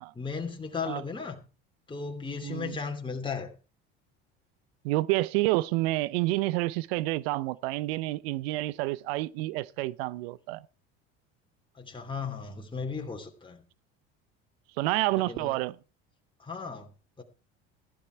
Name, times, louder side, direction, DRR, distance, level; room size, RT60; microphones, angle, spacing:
voice 1, 0.1-1.4 1.9-3.5 11.8-13.6 15.1-15.5 16.4-16.9 17.2-17.3, left 5 dB, 15° left, 3.0 m, -36 dB
voice 2, 2.4-2.8 4.8-10.7 14.8-15.8, right 19 dB, 80° right, 0.7 m, -29 dB
14.5 x 11.5 x 4.6 m
supercardioid pair, 90°, 30 cm